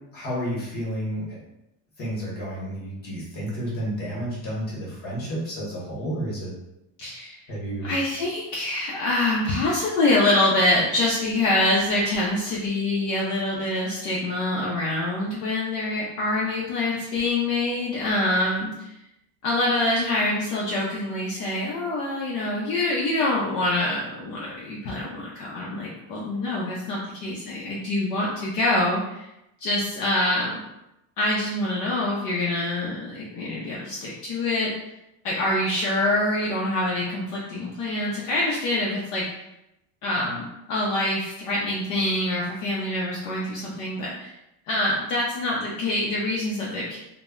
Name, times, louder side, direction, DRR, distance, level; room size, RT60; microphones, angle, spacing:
voice 1, 0.1-1.4 2.0-6.5 7.5-7.9, equal, 25° left, -6 dB, 0.9 m, -31 dB
voice 2, 7.0-7.4 7.8-18.9 19.4-29.3 29.6-30.6 31.2-34.7 35.2-39.2 40.0-44.3 44.7-47.0, left 1 dB, 55° left, -5 dB, 0.5 m, -25 dB
2.1 x 2.0 x 3.5 m, 0.89 s
cardioid pair, 180°, 37 cm